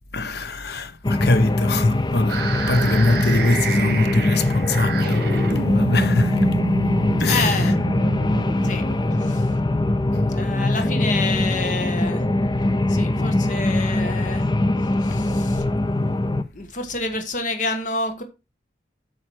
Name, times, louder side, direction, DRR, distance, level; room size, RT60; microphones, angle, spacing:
voice 1, 0.1-6.5 7.2-7.6, left 2 dB, 60° left, 1.0 m, -23 dB
sound 1, 1.0-16.4, left 1 dB, 25° left, 0.6 m, -22 dB
sound 2, 2.3-10.2, right 2 dB, 60° right, 2.7 m, -28 dB
voice 2, 7.3-7.8 8.6-8.8 9.1-9.5 10.3-12.3 12.9-14.5 14.8-15.7 16.5-18.2, left 3 dB, 45° left, 1.6 m, -28 dB
8.9 x 6.3 x 4.8 m
head